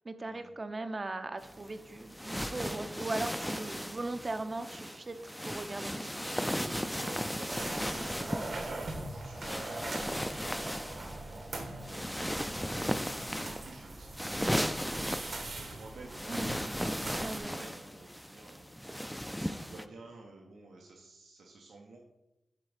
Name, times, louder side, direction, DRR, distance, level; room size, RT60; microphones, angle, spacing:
voice 1, 0.0-6.3 16.3-16.6 17.2-17.7, right 2 dB, 35° right, 10 dB, 0.6 m, -39 dB
sound 1, 1.4-19.9, equal, ahead, 0.4 m, -37 dB
voice 2, 6.5-22.0, right 2 dB, 85° right, 0 dB, 0.9 m, -52 dB
sound 2, 7.5-17.4, right 2 dB, 65° right, 1.2 m, -42 dB
7.6 x 3.5 x 4.9 m, 0.92 s
cardioid pair, 60°, 0 cm